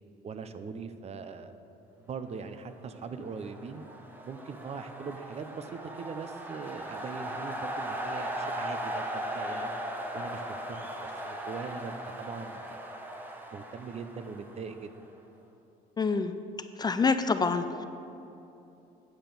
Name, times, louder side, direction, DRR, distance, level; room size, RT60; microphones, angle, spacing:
voice 1, 0.2-1.5 2.0-3.8 4.2-9.8 10.1-12.8 13.5-14.9, right 5 dB, 40° right, 10 dB, 0.6 m, -41 dB
sound 1, 3.1-15.0, right 1 dB, 10° right, 1.0 m, -38 dB
voice 2, 16.0-16.3 16.8-17.8, left 4 dB, 25° left, 9 dB, 0.4 m, -26 dB
9.0 x 5.8 x 6.8 m, 2.9 s
cardioid pair, 110°, 17 cm